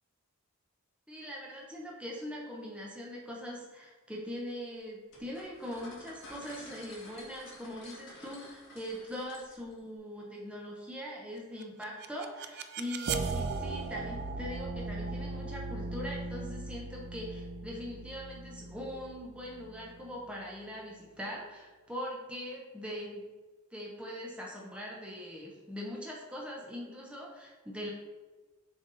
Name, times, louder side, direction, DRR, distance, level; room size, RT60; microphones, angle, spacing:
voice 1, 1.1-23.3 23.7-27.9, equal, 5° right, -4 dB, 1.0 m, -42 dB
sound 1, 5.1-9.8, left 1 dB, 55° left, 2.0 m, -51 dB
sound 2, 11.6-20.6, right 3 dB, 50° right, 0.4 m, -38 dB
7.2 x 3.6 x 4.1 m, 1.3 s
head